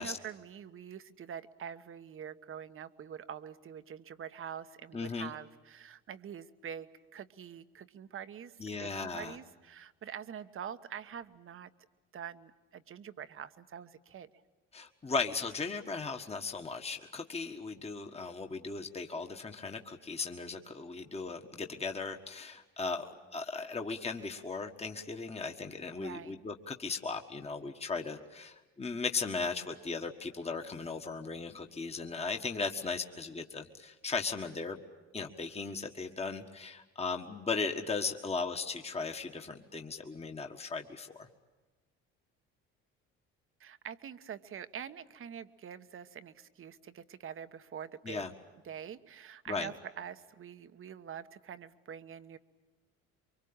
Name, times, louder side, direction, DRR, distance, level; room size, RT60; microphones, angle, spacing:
voice 1, 0.0-11.7 12.1-14.3 26.0-26.4 43.6-48.3 48.6-52.4, right 8 dB, 45° right, 12 dB, 1.2 m, -45 dB
voice 2, 4.9-5.3 8.6-9.3 14.7-34.8 35.1-41.3 48.0-48.3 49.5-49.7, left 4 dB, 20° left, 4 dB, 1.6 m, -37 dB
24.0 x 24.0 x 8.8 m, 1.2 s
supercardioid pair, 75°, 29 cm